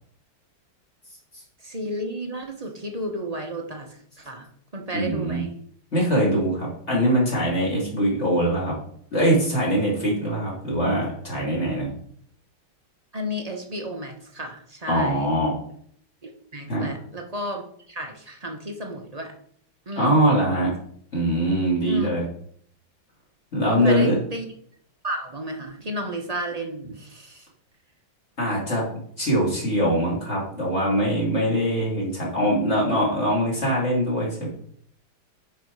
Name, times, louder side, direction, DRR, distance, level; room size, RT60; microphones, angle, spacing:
voice 1, 1.6-4.5 4.7-5.5 13.1-15.3 16.2-19.3 19.9-20.3 21.8-22.1 23.7-24.5 25.0-27.5, equal, 30° right, 3 dB, 0.7 m, -32 dB
voice 2, 4.9-5.4 5.9-8.7 9.1-11.9 14.9-15.6 16.7-16.9 20.0-20.7 21.1-22.2 23.5-24.2 28.4-28.8 29.2-34.5, equal, 35° left, -3 dB, 3.1 m, -22 dB
9.7 x 4.8 x 4.8 m, 0.63 s
omnidirectional pair, 2.2 m